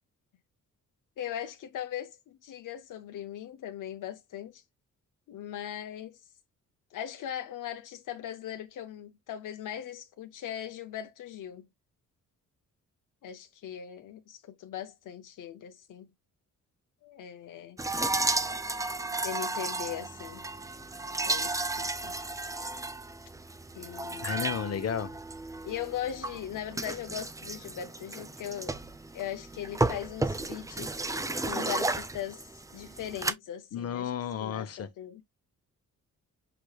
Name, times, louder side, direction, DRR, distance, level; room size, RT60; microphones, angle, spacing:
voice 1, 1.2-4.6 5.3-6.2 6.9-11.7 13.2-16.1 17.0-17.8 19.2-20.4 21.3-22.1 23.7-24.5 25.6-28.8 29.1-31.0 31.5-32.5 32.7-34.1 34.4-35.2, left 10 dB, 80° left, 0.7 m, -39 dB
sound 1, 17.8-33.3, right 2 dB, 10° right, 0.4 m, -33 dB
voice 2, 24.2-25.2 33.7-34.9, left 8 dB, 50° left, 0.9 m, -33 dB
6.0 x 3.3 x 2.3 m
cardioid pair, 105°, 31 cm